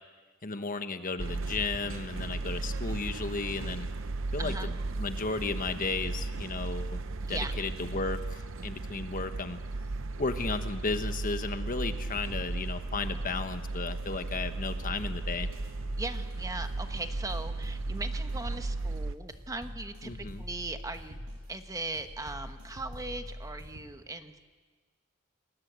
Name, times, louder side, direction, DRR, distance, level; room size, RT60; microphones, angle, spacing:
voice 1, 0.4-3.9 4.3-4.7 5.0-7.0 7.3-9.6 10.2-15.5 20.0-20.4, left 3 dB, 40° left, 9 dB, 1.3 m, -34 dB
sound 1, 1.2-19.1, right 2 dB, 65° right, 0.8 m, -35 dB
voice 2, 4.4-4.7 7.3-7.5 16.0-21.2 21.5-24.5, right 2 dB, 15° right, 7 dB, 1.1 m, -39 dB
sound 2, 11.6-23.8, equal, 85° right, 7.2 m, -44 dB
28.5 x 21.0 x 8.2 m, 1.5 s
head